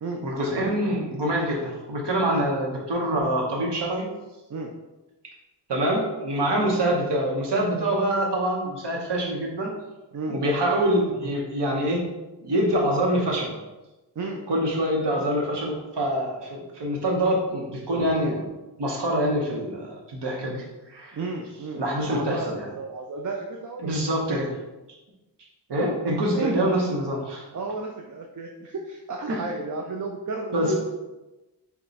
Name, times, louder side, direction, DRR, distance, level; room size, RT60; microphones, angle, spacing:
voice 1, 0.2-4.1 5.7-9.7 10.3-12.0 12.4-13.5 14.5-18.5 18.8-21.2 21.7-22.7 23.8-24.5 25.7-27.5 29.3-29.4 30.5-30.8, right 1 dB, 70° right, -1 dB, 1.1 m, -25 dB
voice 2, 21.1-24.0 24.3-24.5 26.4-26.5 27.5-30.8, right 3 dB, 45° right, 1 dB, 0.5 m, -33 dB
4.3 x 2.3 x 4.0 m, 1.1 s
wide cardioid pair, 85°, 43 cm